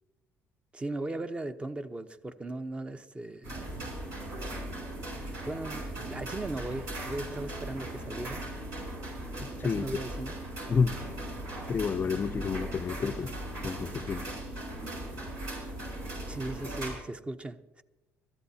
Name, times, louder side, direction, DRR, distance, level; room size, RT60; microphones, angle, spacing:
voice 1, 0.7-3.9 5.4-8.5 9.6-10.4 16.3-17.8, right 2 dB, 20° right, 0.8 m, -38 dB
sound 1, 3.4-16.9, right 1 dB, 75° right, 5.9 m, -38 dB
voice 2, 9.4-9.9 10.7-11.0 11.7-13.3 13.6-14.2, left 6 dB, 40° left, 0.5 m, -30 dB
22.0 x 13.5 x 2.8 m
supercardioid pair, 80°, 5 cm